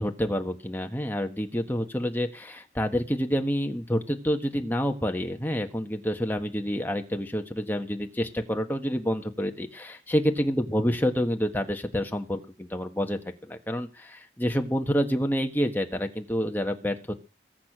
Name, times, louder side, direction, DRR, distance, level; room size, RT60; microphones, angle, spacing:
voice 1, 0.0-17.1, equal, 10° left, 4 dB, 1.5 m, -28 dB
21.5 x 8.5 x 6.1 m, 0.35 s
head